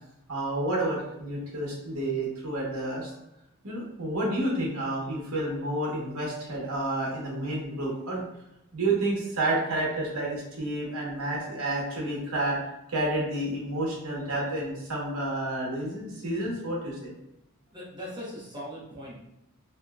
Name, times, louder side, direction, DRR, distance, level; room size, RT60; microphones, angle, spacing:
voice 1, 0.3-3.1 3.6-8.3 8.7-12.6 12.9-17.1, right 1 dB, 70° right, -3 dB, 1.1 m, -30 dB
voice 2, 17.7-19.2, equal, 20° right, -6 dB, 1.0 m, -39 dB
3.5 x 2.7 x 2.3 m, 0.87 s
head